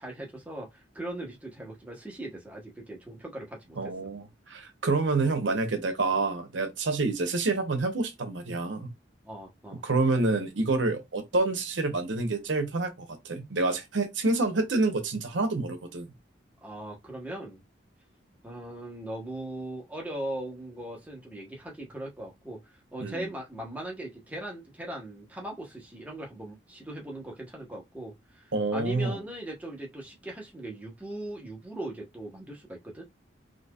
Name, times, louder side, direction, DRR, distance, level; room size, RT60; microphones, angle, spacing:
voice 1, 0.0-3.9 9.2-9.8 16.6-17.6 18.4-22.6 22.9-33.1, right 1 dB, 10° right, 1.1 m, -39 dB
voice 2, 3.8-8.9 9.8-16.1 23.0-23.3 28.5-29.2, right 3 dB, 90° right, 0.9 m, -28 dB
4.2 x 2.9 x 2.4 m
head